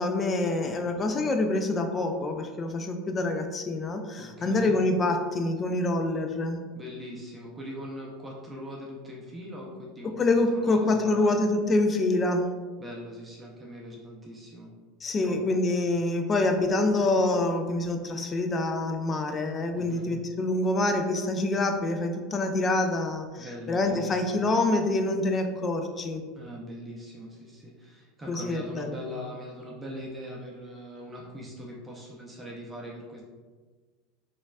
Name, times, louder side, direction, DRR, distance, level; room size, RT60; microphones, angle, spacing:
voice 1, 0.0-6.6 10.2-12.5 15.0-26.2 28.3-29.0, left 2 dB, 30° left, 5 dB, 0.4 m, -26 dB
voice 2, 4.2-4.8 6.7-11.4 12.8-14.7 15.2-15.6 19.7-20.1 23.4-24.4 26.4-33.2, equal, 15° right, -3 dB, 0.6 m, -41 dB
3.9 x 2.4 x 2.2 m, 1.4 s
hypercardioid pair, 80°, 0 cm